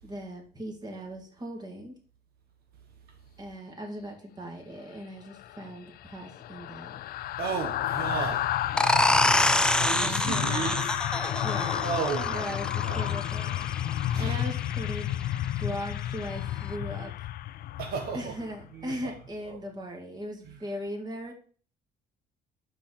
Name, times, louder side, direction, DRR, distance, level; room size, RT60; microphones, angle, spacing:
voice 1, 0.0-1.9 3.4-7.0 10.0-10.8 11.4-11.8 12.3-15.1 15.5-17.3 18.1-21.3, equal, 25° right, 2.6 m, -38 dB
sound 1, 5.3-18.7 19.0-19.2, left 12 dB, 60° left, 0.4 m, -32 dB
voice 2, 7.4-8.6 9.8-11.0 11.7-13.1 14.0-14.5 17.8-18.3 18.7-19.1 19.4-19.7 20.4-20.6, right 6 dB, 70° right, 1.1 m, -34 dB
sound 2, 8.8-14.2, left 1 dB, 5° left, 0.5 m, -26 dB
5.9 x 5.8 x 6.8 m
cardioid pair, 110°, 17 cm